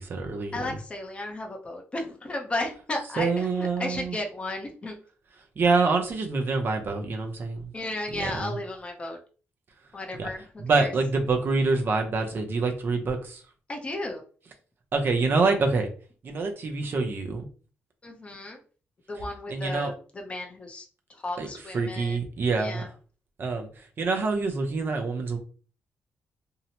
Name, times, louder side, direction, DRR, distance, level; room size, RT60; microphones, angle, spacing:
voice 1, 0.0-0.8 3.1-4.2 5.6-7.7 8.1-8.6 10.2-10.3 10.6-13.4 14.9-15.9 16.2-17.5 19.1-19.9 21.4-22.9 23.4-25.4, right 4 dB, 50° right, 3 dB, 0.6 m, -26 dB
voice 2, 0.5-5.0 7.7-9.2 9.9-10.9 13.7-14.2 18.0-18.6 19.1-22.2 22.6-22.9, left 2 dB, 25° left, 2 dB, 0.6 m, -34 dB
2.7 x 2.0 x 2.8 m, 0.39 s
cardioid pair, 105°, 5 cm